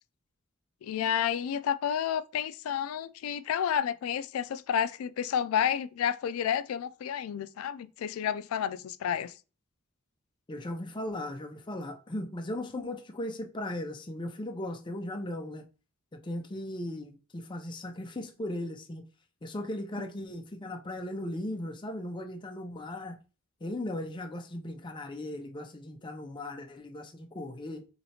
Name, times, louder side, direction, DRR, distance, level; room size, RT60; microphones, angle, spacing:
voice 1, 0.8-9.3, left 8 dB, 90° left, 0.3 m, -30 dB
voice 2, 10.5-15.7 16.2-19.0 19.4-23.2 23.6-27.9, left 1 dB, 25° left, 0.5 m, -37 dB
4.2 x 3.2 x 2.8 m
head